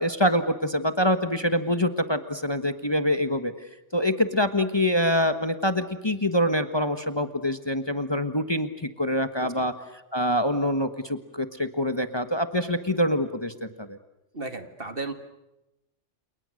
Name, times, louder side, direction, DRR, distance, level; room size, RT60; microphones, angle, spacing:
voice 1, 0.0-3.5 3.9-14.0, equal, 20° left, 9 dB, 1.4 m, -25 dB
voice 2, 14.3-15.1, right 3 dB, 50° right, 8 dB, 2.3 m, -34 dB
30.0 x 29.0 x 6.5 m, 0.95 s
omnidirectional pair, 1.2 m